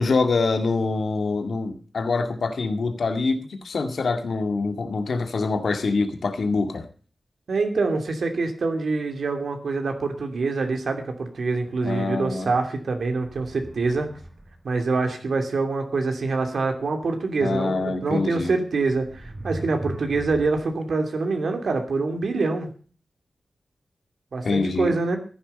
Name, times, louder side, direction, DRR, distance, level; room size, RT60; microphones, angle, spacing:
voice 1, 0.0-6.9 11.8-12.5 17.4-18.5 24.4-24.9, left 3 dB, 80° left, 7 dB, 2.1 m, -25 dB
voice 2, 7.5-14.1 14.6-22.7 24.3-25.2, right 3 dB, 80° right, 5 dB, 2.8 m, -25 dB
sound 1, 13.1-14.7 17.8-17.9 18.8-20.7, right 1 dB, 20° right, 2.5 m, -38 dB
14.5 x 11.0 x 5.4 m, 0.41 s
wide cardioid pair, 90°, 0 cm